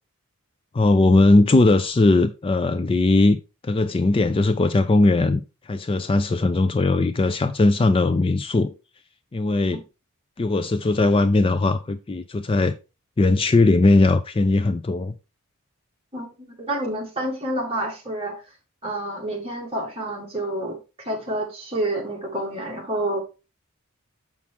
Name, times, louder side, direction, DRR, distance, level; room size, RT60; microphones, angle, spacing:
voice 1, 0.7-3.4 3.6-8.7 9.3-9.8 10.4-12.7 13.2-15.1, left 2 dB, 25° left, 0.4 m, -19 dB
voice 2, 16.6-18.4 18.8-20.8 21.1-23.2, right 1 dB, 25° right, 2.2 m, -28 dB
7.1 x 5.9 x 3.6 m
head